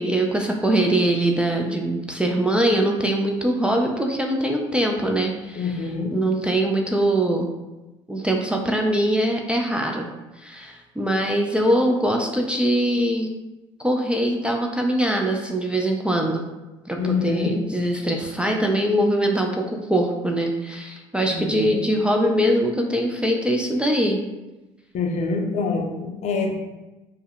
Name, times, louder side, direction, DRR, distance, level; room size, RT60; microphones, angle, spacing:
voice 1, 0.0-5.8 6.1-7.5 8.1-10.1 10.4-13.3 13.8-16.4 16.9-19.6 19.9-24.2, right 1 dB, 5° right, 1 dB, 0.3 m, -22 dB
voice 2, 5.5-6.1 17.0-17.6 21.3-21.8 24.9-26.6, left 4 dB, 50° left, 2 dB, 0.5 m, -25 dB
2.1 x 2.1 x 3.5 m, 1.1 s
hypercardioid pair, 65°, 15 cm